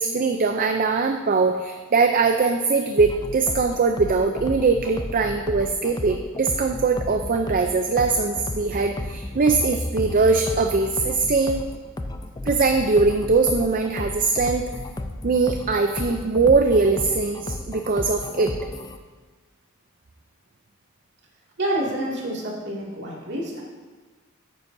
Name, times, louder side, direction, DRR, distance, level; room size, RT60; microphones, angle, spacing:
voice 1, 0.0-11.6 12.4-14.7 15.2-18.5, right 4 dB, 40° right, 5 dB, 0.5 m, -21 dB
sound 1, 3.0-19.0, left 1 dB, 20° left, 0.5 m, -33 dB
voice 2, 21.6-23.6, right 1 dB, 55° right, -3 dB, 2.2 m, -28 dB
13.0 x 9.4 x 2.7 m, 1.4 s
head